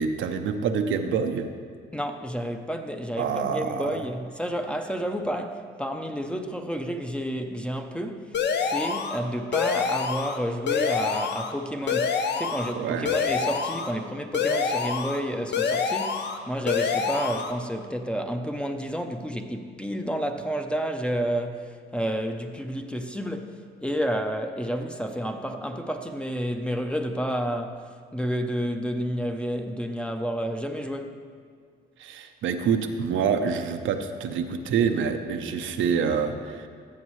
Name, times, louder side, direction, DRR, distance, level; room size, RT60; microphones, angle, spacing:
voice 1, 0.0-1.5 3.2-4.0 12.7-13.1 32.0-36.7, right 6 dB, 75° right, 6 dB, 0.7 m, -26 dB
voice 2, 1.9-27.8 28.1-31.1, equal, 5° left, 5 dB, 0.7 m, -30 dB
sound 1, 8.3-9.2 9.5-10.4 10.7-11.5 11.9-12.7 13.1-13.9 14.3-15.2 15.5-16.4 16.7-17.5, left 6 dB, 60° left, 0.8 m, -26 dB
14.0 x 7.3 x 3.2 m, 2.1 s
cardioid pair, 90°, 20 cm